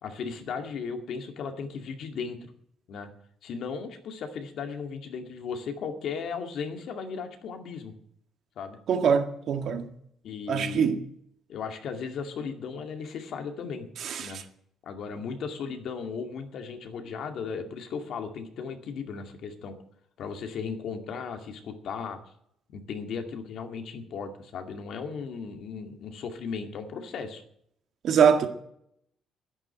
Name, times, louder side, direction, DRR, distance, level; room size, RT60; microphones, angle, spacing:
voice 1, 0.0-2.5 2.9-3.1 3.4-7.9 8.6-8.8 10.2-10.9 11.5-13.9 14.2-14.4 14.8-19.8 20.2-22.2 22.7-27.4, left 5 dB, 60° left, 2.2 m, -36 dB
voice 2, 8.9-9.9 10.5-11.0 14.0-14.4 28.0-28.5, right 7 dB, 55° right, 1.8 m, -23 dB
11.0 x 10.5 x 8.8 m
cardioid pair, 145°, 0 cm